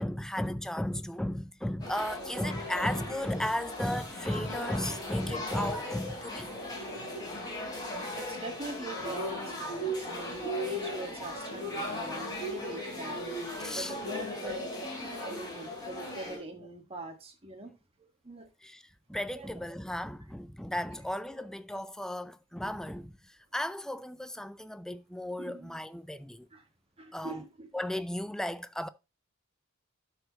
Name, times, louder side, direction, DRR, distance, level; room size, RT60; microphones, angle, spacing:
voice 1, 0.0-6.5 13.6-13.9 18.6-18.8 19.1-23.2 23.5-26.5 27.1-27.4 27.7-28.9, left 1 dB, 5° left, 0.4 m, -35 dB
sound 1, 1.8-16.4, left 1 dB, 20° left, 3.4 m, -37 dB
voice 2, 8.1-13.4 13.7-17.7 18.2-18.5 19.3-19.5 21.3-21.5 25.4-25.8 26.5-26.6 27.0-27.7, right 2 dB, 30° right, 1.6 m, -43 dB
12.0 x 4.6 x 4.0 m
head